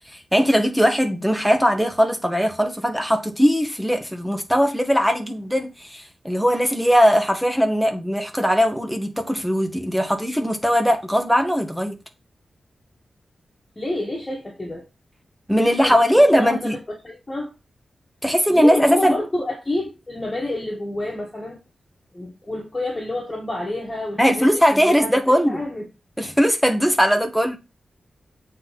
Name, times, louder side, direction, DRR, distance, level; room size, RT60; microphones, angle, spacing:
voice 1, 0.3-12.0 15.5-16.8 18.2-19.1 24.2-25.6 26.2-27.6, equal, ahead, 1.4 m, -19 dB
voice 2, 13.8-14.9 15.5-16.7 17.0-17.5 18.5-21.6 22.1-25.9, left 1 dB, 20° left, 1.8 m, -29 dB
7.7 x 4.0 x 5.8 m
wide cardioid pair, 145°, 0 cm